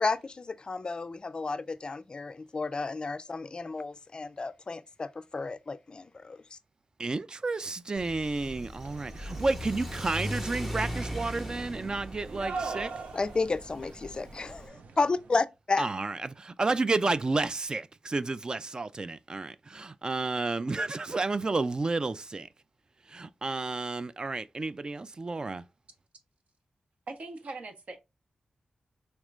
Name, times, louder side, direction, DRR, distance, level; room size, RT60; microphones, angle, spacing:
voice 1, 0.0-6.6 13.1-15.9, left 3 dB, 40° left, 0.3 m, -32 dB
voice 2, 7.0-12.9 15.8-22.5 23.1-25.6, right 3 dB, 35° right, 0.3 m, -31 dB
Car / Accelerating revving vroom, 8.0-14.7, equal, 10° right, 0.9 m, -39 dB
sound 1, 8.8-15.3, right 4 dB, 85° right, 0.6 m, -42 dB
voice 3, 27.1-28.0, right 3 dB, 65° right, 1.0 m, -40 dB
4.3 x 3.1 x 2.4 m
wide cardioid pair, 100°, 2 cm